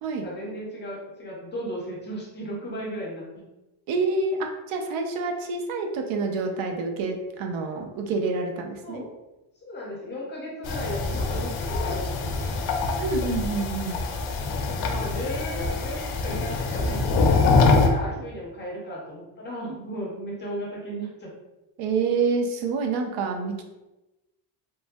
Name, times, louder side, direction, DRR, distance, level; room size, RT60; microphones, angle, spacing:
voice 1, 0.2-3.4 8.8-9.1 9.6-12.5 14.7-21.3, equal, 20° left, -4 dB, 0.7 m, -35 dB
voice 2, 3.9-9.0 13.0-14.0 18.1-18.2 19.7-19.8 21.8-23.6, right 4 dB, 85° right, 3 dB, 0.6 m, -27 dB
sound 1, 10.6-17.9, left 3 dB, 55° left, 0.5 m, -24 dB
3.2 x 2.5 x 2.3 m, 1.0 s
cardioid pair, 160°, 47 cm